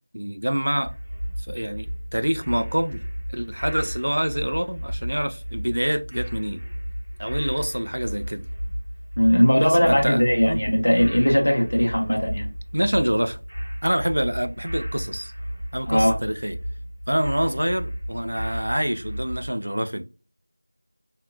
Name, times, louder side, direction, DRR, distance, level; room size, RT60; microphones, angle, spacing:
voice 1, 0.1-0.9 1.5-3.0 3.3-6.6 7.2-8.4 9.6-10.6 12.7-13.4 13.8-15.3 15.7-16.6 17.1-20.0, equal, 60° right, 0.4 m, -26 dB
sound 1, 0.8-19.5, equal, 80° right, 1.1 m, -33 dB
voice 2, 9.2-12.5 15.9-16.2, equal, 35° left, 0.6 m, -19 dB
3.5 x 2.5 x 2.2 m
figure-of-eight pair, 180°, 0 cm